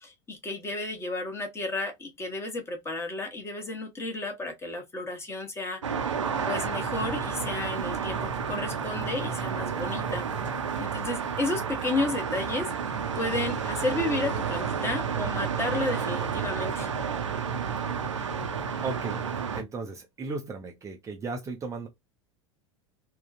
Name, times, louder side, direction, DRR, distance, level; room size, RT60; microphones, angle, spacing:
voice 1, 0.0-5.8 6.4-10.2 10.8-12.7 13.1-16.9, left 2 dB, 15° left, 1.1 m, -32 dB
sound 1, 5.8-19.6, right 6 dB, 75° right, 0.7 m, -31 dB
voice 2, 18.8-19.2 19.5-21.9, right 3 dB, 20° right, 0.6 m, -35 dB
3.6 x 2.3 x 2.4 m
figure-of-eight pair, 80°, 16 cm